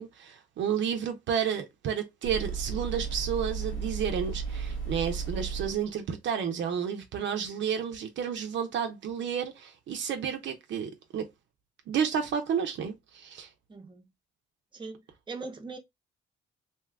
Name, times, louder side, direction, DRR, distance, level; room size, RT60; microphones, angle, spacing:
voice 1, 0.0-11.3 11.9-13.5, right 7 dB, 70° right, 0.7 m, -31 dB
sound 1, 2.2-6.0, right 5 dB, 75° left, 1.2 m, -34 dB
voice 2, 13.7-14.0 14.7-15.8, right 3 dB, 25° right, 0.8 m, -41 dB
2.9 x 2.3 x 3.3 m
cardioid pair, 90°, 20 cm